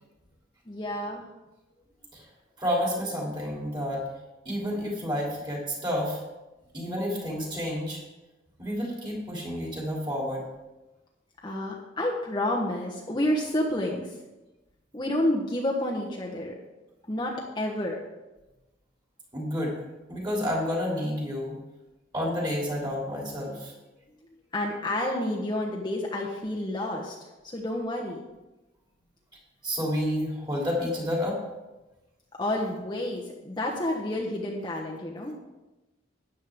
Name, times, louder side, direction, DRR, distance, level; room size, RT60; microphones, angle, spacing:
voice 1, 0.7-1.3 11.4-14.2 14.9-16.5 17.1-18.0 24.5-27.1 27.4-28.2 32.4-35.3, left 1 dB, 25° left, -2 dB, 1.1 m, -29 dB
voice 2, 2.6-4.0 4.4-6.2 6.7-8.0 8.6-10.4 19.3-19.8 20.1-21.6 22.1-23.7 29.6-31.4, equal, 25° right, -3 dB, 3.2 m, -30 dB
12.5 x 9.4 x 3.6 m, 1.1 s
head